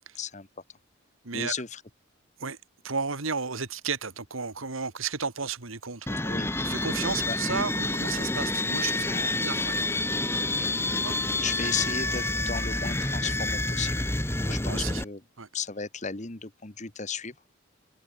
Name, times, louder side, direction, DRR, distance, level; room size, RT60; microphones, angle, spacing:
voice 1, 0.1-0.5 1.3-1.8 6.2-6.5 7.3-7.4 9.1-9.4 10.5-14.0 14.5-15.2 15.5-17.3, left 6 dB, 35° left, 1.5 m, -35 dB
voice 2, 2.8-6.2 6.6-9.9 11.0-11.2 14.4-15.0 15.4-15.5, right 5 dB, 85° right, 2.2 m, -33 dB
sound 1, 6.1-15.0, left 2 dB, 10° left, 1.6 m, -28 dB
head